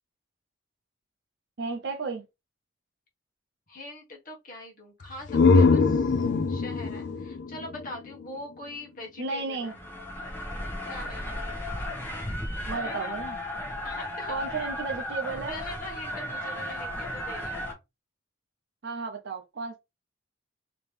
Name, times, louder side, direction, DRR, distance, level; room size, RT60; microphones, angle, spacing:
voice 1, 1.6-2.2 9.2-9.7 12.7-13.4 14.3-15.6 18.8-19.8, right 4 dB, 60° right, 0.5 m, -33 dB
voice 2, 3.7-9.8 10.9-11.4 12.8-13.2 13.8-14.7 15.5-17.7, left 1 dB, 45° left, 1.1 m, -42 dB
sound 1, 5.0-8.7, left 4 dB, 60° left, 0.4 m, -23 dB
sound 2, 9.6-17.7, left 1 dB, 10° left, 1.0 m, -35 dB
3.5 x 2.9 x 3.2 m
head